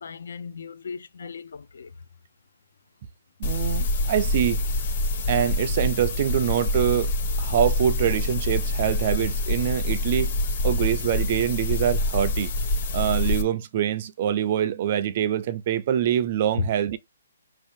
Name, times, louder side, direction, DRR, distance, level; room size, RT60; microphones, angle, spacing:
voice 1, 0.0-1.9 16.5-16.7, left 5 dB, 65° left, 0.5 m, -34 dB
sound 1, 3.4-13.4, left 2 dB, 35° left, 1.0 m, -26 dB
voice 2, 3.4-4.6 5.3-7.1 7.4-10.3 10.6-12.5 12.9-17.0, right 10 dB, 35° right, 0.4 m, -24 dB
5.2 x 2.7 x 3.5 m
hypercardioid pair, 165°, 0 cm